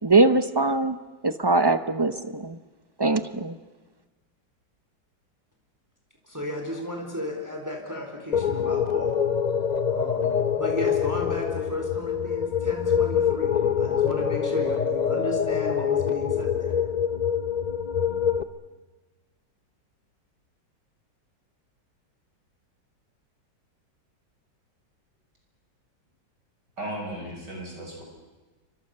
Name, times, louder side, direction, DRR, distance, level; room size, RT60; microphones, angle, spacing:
voice 1, 0.0-1.0 1.2-2.6 3.0-3.6, right 3 dB, 30° right, 10 dB, 0.4 m, -22 dB
voice 2, 6.2-9.2 9.9-16.7, left 1 dB, 10° right, 1 dB, 4.3 m, -34 dB
sound 1, 8.3-18.4, left 8 dB, 45° left, 0.5 m, -25 dB
voice 3, 26.8-28.0, right 1 dB, 65° right, 0 dB, 7.3 m, -35 dB
29.0 x 25.0 x 6.8 m, 1.2 s
omnidirectional pair, 2.0 m